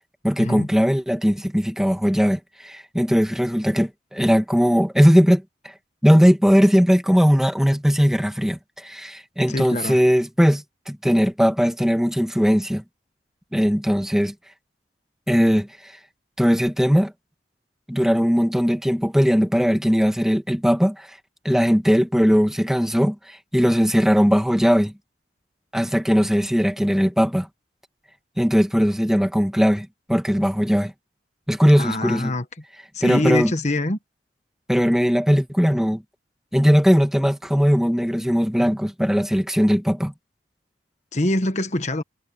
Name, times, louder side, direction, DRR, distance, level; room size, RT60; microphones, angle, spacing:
voice 1, 0.2-5.4 6.0-12.8 13.5-14.3 15.3-15.9 16.4-17.1 17.9-21.2 21.4-24.9 25.7-27.5 28.4-30.9 31.5-32.3 33.0-33.5 34.7-36.0 36.5-40.1, equal, 5° right, 1.9 m, -19 dB
voice 2, 9.5-10.0 31.8-32.4 32.9-34.0 41.1-42.0, left 1 dB, 40° left, 1.3 m, -24 dB
head